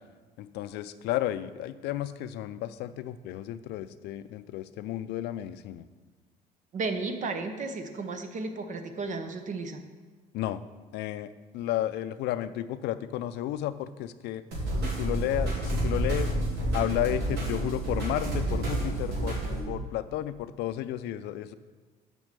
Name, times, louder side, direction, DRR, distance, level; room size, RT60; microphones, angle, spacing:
voice 1, 0.4-5.9 10.3-10.6 10.9-14.4 14.8-16.3 16.7-19.4 19.7-21.5, left 13 dB, 80° left, 13 dB, 0.4 m, -32 dB
voice 2, 6.7-9.8, right 3 dB, 50° right, 7 dB, 0.8 m, -33 dB
sound 1, 14.5-19.6, right 1 dB, 90° right, 2.5 m, -29 dB
6.3 x 5.3 x 6.7 m, 1.4 s
cardioid pair, 110°, 17 cm